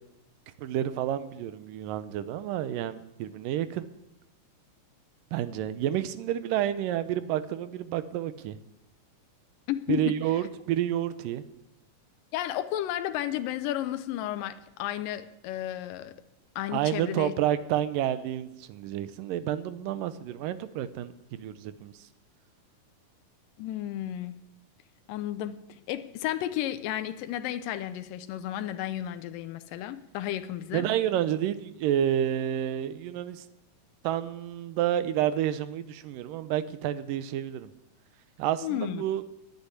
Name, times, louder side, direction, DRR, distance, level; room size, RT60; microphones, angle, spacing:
voice 1, 0.6-3.9 5.3-8.6 9.9-11.5 16.7-21.9 30.7-33.4 34.0-37.7 38.4-39.2, right 11 dB, 85° right, 13 dB, 2.4 m, -29 dB
voice 2, 9.7-10.1 12.3-16.2 16.6-17.3 23.6-24.4 25.1-30.9 38.6-39.0, left 12 dB, 85° left, 10 dB, 2.4 m, -33 dB
11.0 x 9.8 x 9.7 m, 0.86 s
omnidirectional pair, 3.9 m